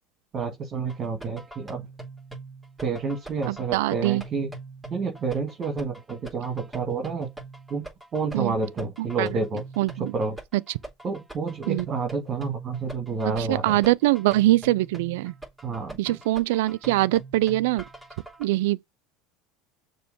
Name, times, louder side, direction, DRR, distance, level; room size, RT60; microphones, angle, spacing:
voice 1, 0.3-1.9 2.8-4.5 4.9-7.3 7.7-7.9 8.1-9.6 10.1-10.4 11.0-13.8 15.6-16.2, right 4 dB, 35° right, 2.0 m, -29 dB
sound 1, 0.9-18.4, right 2 dB, 10° right, 3.4 m, -43 dB
voice 2, 3.5-4.2 8.3-8.5 9.0-9.3 9.8-10.1 11.7-11.9 13.4-15.3 16.0-17.8 18.4-18.8, right 17 dB, 70° right, 0.4 m, -23 dB
6.8 x 3.1 x 5.4 m
hypercardioid pair, 90°, 0 cm